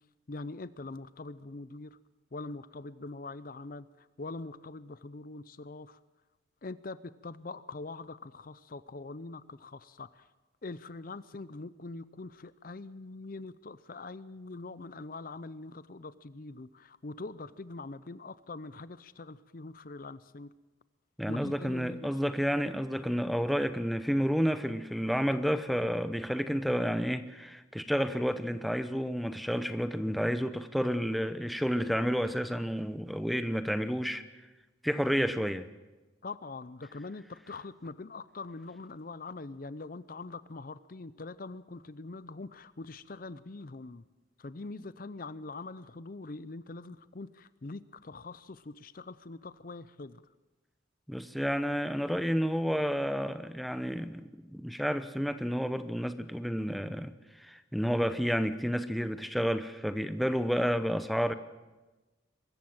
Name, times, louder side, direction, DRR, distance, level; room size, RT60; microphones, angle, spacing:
voice 1, 0.3-2.0 2.3-6.0 6.6-10.3 10.6-20.5 21.3-22.4 36.2-44.0 44.4-50.2, left 3 dB, 50° left, 0.6 m, -43 dB
voice 2, 21.2-34.2 34.8-35.7 51.1-57.1 57.4-61.3, equal, ahead, 0.8 m, -30 dB
23.0 x 14.0 x 8.8 m
head